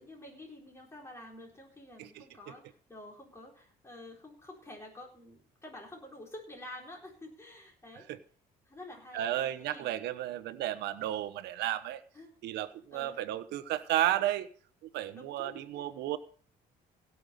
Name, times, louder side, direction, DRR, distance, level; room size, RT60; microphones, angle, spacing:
voice 1, 0.0-8.1 8.7-9.9 12.1-12.4 12.9-13.2 15.1-15.9, left 1 dB, 15° left, -1 dB, 3.9 m, -49 dB
voice 2, 9.1-12.0 12.4-14.5 14.9-16.2, right 13 dB, 80° right, 11 dB, 1.1 m, -33 dB
17.0 x 5.8 x 6.8 m, 0.43 s
cardioid pair, 110°, 17 cm